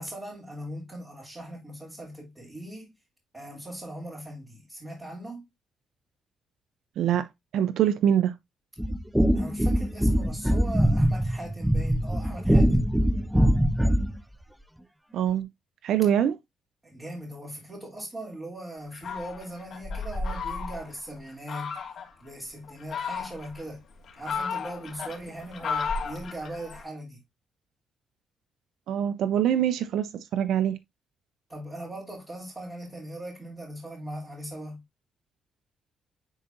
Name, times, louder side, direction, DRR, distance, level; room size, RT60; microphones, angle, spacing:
voice 1, 0.0-2.9 3.3-5.5 9.3-12.9 16.8-21.8 22.2-23.8 24.1-27.2 31.5-34.8, right 1 dB, 20° right, 2.9 m, -39 dB
voice 2, 7.0-7.3 7.5-8.3 15.1-15.5 15.8-16.3 28.9-30.8, right 10 dB, 75° right, 0.6 m, -24 dB
sound 1, 8.8-14.2, equal, 5° right, 0.6 m, -23 dB
Fowl, 18.9-21.0 21.5-22.1 22.7-23.6 24.0-26.8, left 5 dB, 60° left, 2.3 m, -33 dB
10.0 x 4.1 x 2.6 m
cardioid pair, 90°, 0 cm